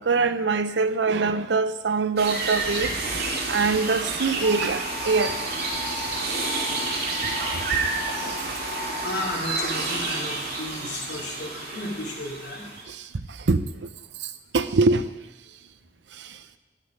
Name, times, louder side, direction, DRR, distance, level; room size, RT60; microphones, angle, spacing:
voice 1, 0.0-5.4 5.9-6.0 7.2-7.3 7.6-7.8 8.1-8.5 12.9-13.1 13.5-13.7 14.5-15.1 16.2-16.3, right 4 dB, 75° right, 12 dB, 0.7 m, -24 dB
sound 1, 2.2-12.8, right 3 dB, 60° right, 2.4 m, -29 dB
sound 2, 4.4-9.2, left 3 dB, 20° left, 1.3 m, -37 dB
voice 2, 9.0-12.6, left 1 dB, 65° left, -2 dB, 2.9 m, -33 dB
11.5 x 8.5 x 6.3 m, 1.1 s
head